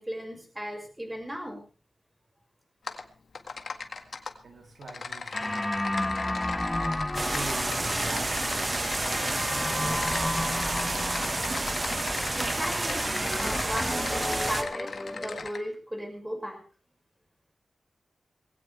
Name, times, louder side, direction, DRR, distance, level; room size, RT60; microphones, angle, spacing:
voice 1, 0.0-1.6 12.4-13.1 13.4-16.6, equal, 10° right, 2 dB, 5.8 m, -36 dB
Typing, 2.9-3.0 3.4-4.3 4.8-15.6, left 4 dB, 70° left, 1.8 m, -38 dB
voice 2, 4.4-5.8 6.3-8.7 9.1-10.7, right 3 dB, 70° right, 3 dB, 2.6 m, -44 dB
sound 1, 5.3-15.5, left 1 dB, 15° left, 0.7 m, -33 dB
sound 2, 7.1-14.6, right 2 dB, 30° right, 1.5 m, -30 dB
20.0 x 17.0 x 3.4 m, 0.35 s
wide cardioid pair, 120°, 0 cm